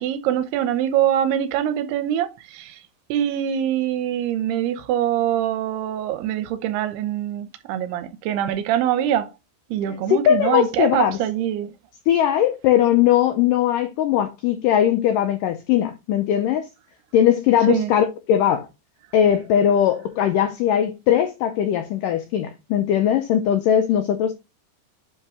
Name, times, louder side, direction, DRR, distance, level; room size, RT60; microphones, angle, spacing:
voice 1, 0.0-2.8 3.1-9.3 9.7-11.7 17.7-17.9, right 11 dB, 80° right, 2.8 m, -24 dB
voice 2, 9.9-11.2 12.1-16.7 17.1-18.7 19.1-24.3, left 10 dB, 85° left, 1.9 m, -19 dB
10.0 x 3.7 x 3.4 m
omnidirectional pair, 4.6 m